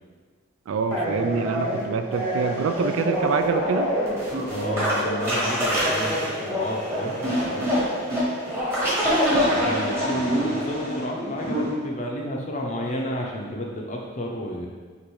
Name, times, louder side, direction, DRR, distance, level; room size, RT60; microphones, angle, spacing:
voice 1, 0.7-3.9, right 5 dB, 80° right, 8 dB, 0.3 m, -25 dB
sound 1, 0.9-11.7, equal, 10° right, 1.1 m, -25 dB
voice 2, 4.5-7.9 9.3-14.7, equal, 35° left, -1 dB, 0.6 m, -31 dB
6.2 x 2.5 x 3.1 m, 1.5 s
head